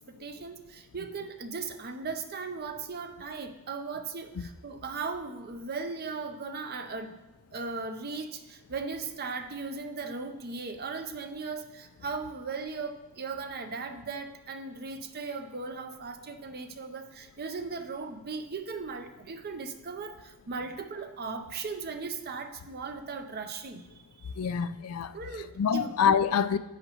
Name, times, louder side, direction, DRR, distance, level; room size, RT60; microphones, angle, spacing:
voice 1, 0.1-7.2 7.5-23.9 24.2-24.3 25.1-25.9, right 4 dB, 45° right, 0.7 m, -37 dB
voice 2, 24.4-25.1 25.6-26.6, left 7 dB, 85° left, 0.4 m, -26 dB
10.5 x 8.0 x 3.0 m
head